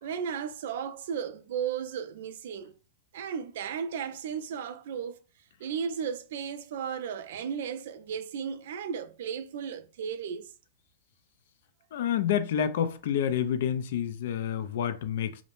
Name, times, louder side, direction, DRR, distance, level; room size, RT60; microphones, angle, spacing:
voice 1, 0.0-2.7 3.1-5.2 5.6-10.5, right 7 dB, 55° right, 0.3 m, -35 dB
voice 2, 11.9-15.4, left 9 dB, 55° left, 0.3 m, -28 dB
2.5 x 2.0 x 3.0 m
supercardioid pair, 175°, 0 cm